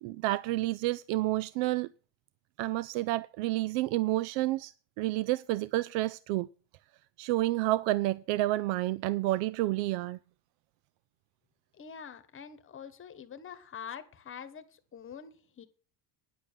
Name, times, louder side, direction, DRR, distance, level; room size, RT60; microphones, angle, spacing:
voice 1, 0.0-1.9 2.6-6.5 7.2-10.2, right 17 dB, 70° right, 0.5 m, -30 dB
voice 2, 11.8-15.7, left 7 dB, 25° left, 1.2 m, -45 dB
10.0 x 7.0 x 7.2 m
cardioid pair, 140°, 48 cm